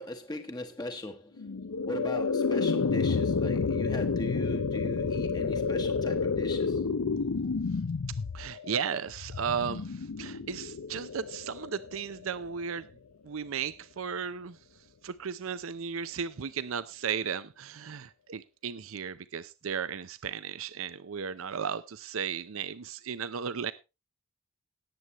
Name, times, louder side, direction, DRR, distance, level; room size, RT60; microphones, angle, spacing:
voice 1, 0.0-1.5 1.8-6.8, left 1 dB, 20° left, 1.0 m, -39 dB
sound 1, 1.4-12.5, left 4 dB, 90° left, 0.6 m, -30 dB
voice 2, 8.3-12.9 13.2-14.6 15.0-23.7, right 7 dB, 70° right, 0.6 m, -35 dB
18.0 x 8.1 x 3.0 m
head